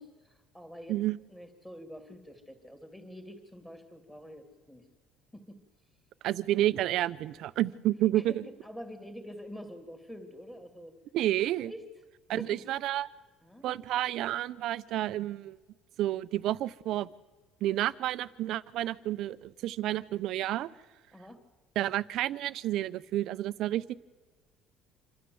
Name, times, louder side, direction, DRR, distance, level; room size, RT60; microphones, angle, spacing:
voice 1, 0.0-1.0 1.3-4.8 5.3-5.6 8.1-10.9 11.6-11.8 12.3-12.6 13.4-13.8 21.1-21.4, equal, 5° left, 6 dB, 2.6 m, -46 dB
voice 2, 6.2-8.4 11.1-11.7 12.3-13.1 13.6-15.6 16.0-17.1 17.6-20.7 21.8-23.9, right 14 dB, 55° right, 16 dB, 0.6 m, -30 dB
26.5 x 13.0 x 7.8 m, 1.4 s
cardioid pair, 155°, 0 cm